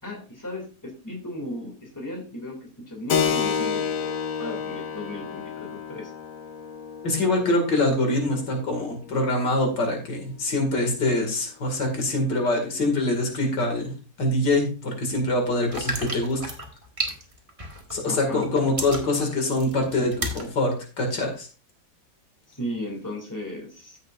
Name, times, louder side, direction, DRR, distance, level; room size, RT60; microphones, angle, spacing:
voice 1, 0.0-4.1 4.4-6.1 18.1-18.4 22.5-24.0, left 1 dB, 10° left, 0 dB, 2.5 m, -36 dB
Keyboard (musical), 3.1-11.3, left 7 dB, 55° left, 1.2 m, -31 dB
voice 2, 7.0-13.9 14.2-16.4 17.9-21.5, left 2 dB, 85° left, 3 dB, 2.9 m, -24 dB
sound 1, 15.7-18.1 18.4-20.5 21.0-21.1, right 1 dB, 20° right, 1.6 m, -32 dB
14.5 x 6.6 x 2.5 m, 0.35 s
omnidirectional pair, 1.8 m